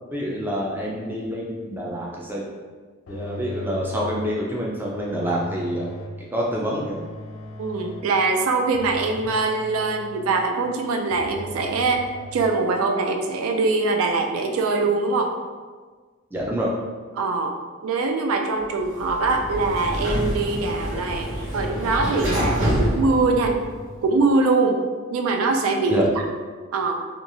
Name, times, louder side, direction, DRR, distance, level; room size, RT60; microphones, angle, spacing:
voice 1, 0.1-2.4 3.1-5.9 6.3-7.0 16.3-16.7 25.9-26.1, equal, 10° right, -4 dB, 0.3 m, -27 dB
sound 1, 3.1-4.4 4.9-6.3 6.8-8.2 8.7-10.6 11.1-12.5, left 1 dB, 70° left, 0.3 m, -38 dB
voice 2, 7.6-12.0 12.3-15.3 17.2-17.6 17.8-23.6 24.0-24.8 25.1-26.4 26.7-27.0, right 3 dB, 85° right, 4 dB, 0.3 m, -23 dB
Sliding door, 18.8-24.0, equal, 65° right, 1.3 m, -27 dB
2.9 x 2.3 x 2.6 m, 1.5 s
head